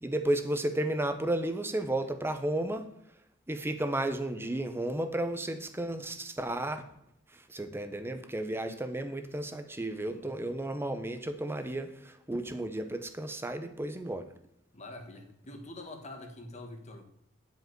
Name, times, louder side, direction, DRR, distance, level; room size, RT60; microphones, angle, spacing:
voice 1, 0.0-2.9 3.5-6.8 7.3-14.3, right 1 dB, 10° right, 8 dB, 0.7 m, -33 dB
voice 2, 14.7-17.0, left 2 dB, 35° left, 4 dB, 1.2 m, -45 dB
10.0 x 5.2 x 4.6 m, 0.77 s
head